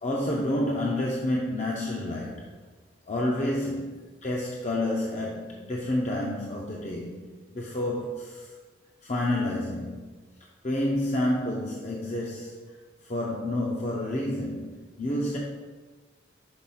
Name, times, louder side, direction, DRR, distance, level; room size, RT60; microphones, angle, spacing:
voice 1, 0.0-2.4 3.1-7.2 7.5-8.5 9.0-10.1 10.6-12.6 13.0-15.4, left 1 dB, 40° left, -2 dB, 0.7 m, -29 dB
6.0 x 4.1 x 5.6 m, 1.3 s
head